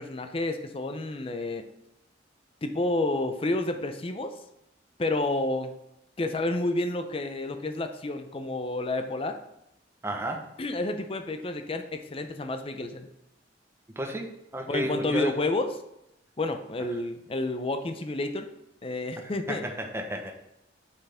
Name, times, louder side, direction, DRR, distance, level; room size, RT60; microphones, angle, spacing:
voice 1, 0.0-1.6 2.6-4.4 5.0-5.7 6.2-9.4 10.6-13.1 14.7-15.7 16.4-18.5 18.8-19.6, left 2 dB, 30° left, 7 dB, 0.5 m, -30 dB
voice 2, 10.0-10.4 14.0-15.4 19.2-20.3, right 1 dB, 15° right, 2 dB, 0.9 m, -32 dB
7.9 x 5.7 x 3.4 m, 0.84 s
head